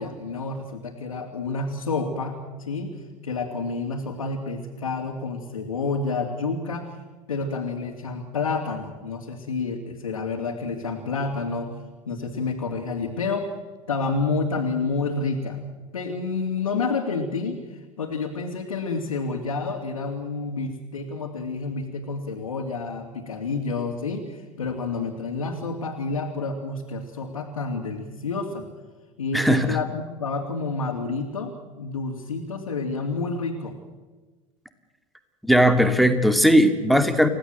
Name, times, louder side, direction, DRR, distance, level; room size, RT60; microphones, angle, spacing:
voice 1, 0.0-6.9 7.3-11.7 12.0-13.5 13.9-15.6 15.9-28.7 29.2-33.8, left 4 dB, 80° left, 1 dB, 2.8 m, -29 dB
voice 2, 29.3-29.8 35.5-37.3, equal, ahead, 8 dB, 2.5 m, -18 dB
29.5 x 16.5 x 7.7 m, 1.3 s
figure-of-eight pair, 80°, 17 cm